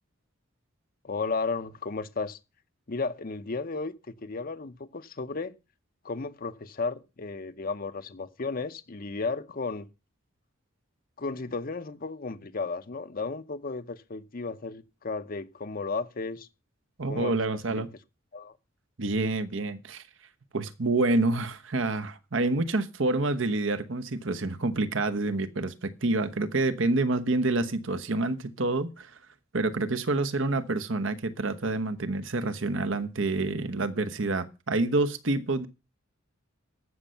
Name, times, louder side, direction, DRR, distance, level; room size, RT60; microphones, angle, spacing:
voice 1, 1.0-2.4 2.9-3.9 4.2-5.5 6.0-9.9 11.2-16.5 17.1-17.3 17.7-17.9 18.3-18.5, left 4 dB, 45° left, 0.7 m, -34 dB
voice 2, 17.0-17.9 19.0-20.0 20.5-29.2 29.5-35.7, right 2 dB, 65° right, 1.1 m, -28 dB
14.0 x 6.4 x 5.6 m
head